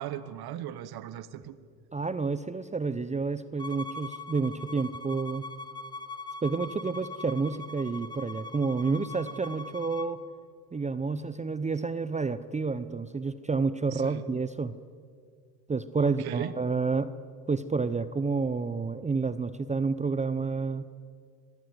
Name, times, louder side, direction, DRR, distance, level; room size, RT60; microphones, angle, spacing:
voice 1, 0.0-1.6 13.9-14.2 16.0-16.5, right 12 dB, 55° right, 15 dB, 1.3 m, -38 dB
voice 2, 1.9-5.4 6.4-10.2 10.7-14.7 15.7-17.1 17.5-20.8, right 4 dB, 15° right, 14 dB, 0.7 m, -29 dB
Bowed string instrument, 3.6-10.1, left 2 dB, 10° left, 1.4 m, -41 dB
25.5 x 18.0 x 8.0 m, 2.1 s
supercardioid pair, 85°, 46 cm